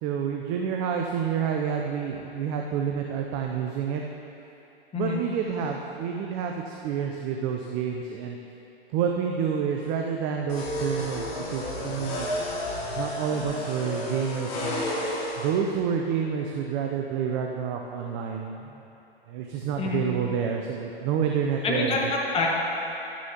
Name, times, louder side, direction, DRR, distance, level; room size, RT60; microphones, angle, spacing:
voice 1, 0.0-4.0 4.9-8.4 8.9-12.3 13.0-14.8 15.4-18.8 19.3-22.1, right 7 dB, 20° right, 2 dB, 0.4 m, -28 dB
sound 1, 10.5-15.5, left 1 dB, 35° left, 2.3 m, -31 dB
voice 2, 21.6-22.5, left 4 dB, 20° left, -2 dB, 1.4 m, -26 dB
12.5 x 10.0 x 2.9 m, 3.0 s
hypercardioid pair, 120°, 32 cm